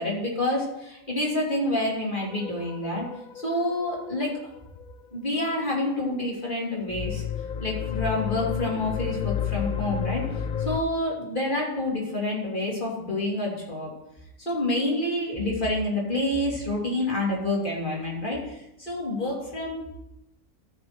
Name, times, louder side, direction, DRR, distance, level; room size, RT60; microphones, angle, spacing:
voice 1, 0.0-3.1 3.3-4.4 5.1-7.2 7.6-10.2 10.6-13.9 14.4-20.1, left 1 dB, 35° left, -3 dB, 3.1 m, -28 dB
sound 1, 2.3-4.9 6.9-10.8, left 9 dB, 70° left, 0.4 m, -31 dB
14.5 x 6.6 x 4.3 m, 0.86 s
omnidirectional pair, 1.4 m